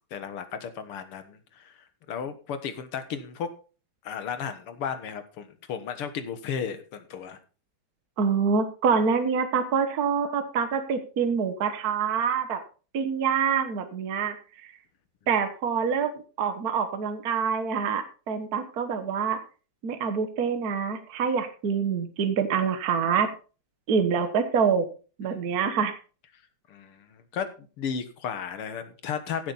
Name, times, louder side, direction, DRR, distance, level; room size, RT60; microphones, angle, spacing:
voice 1, 0.1-1.8 2.1-3.5 4.0-7.4 26.7-27.5 27.8-29.5, left 7 dB, 85° left, 10 dB, 2.3 m, -34 dB
voice 2, 8.2-12.6 12.9-14.3 14.6-14.7 15.3-19.4 19.8-23.3 23.9-24.9 25.2-26.0, right 6 dB, 50° right, 8 dB, 1.6 m, -26 dB
15.5 x 7.8 x 4.1 m, 0.36 s
omnidirectional pair, 2.4 m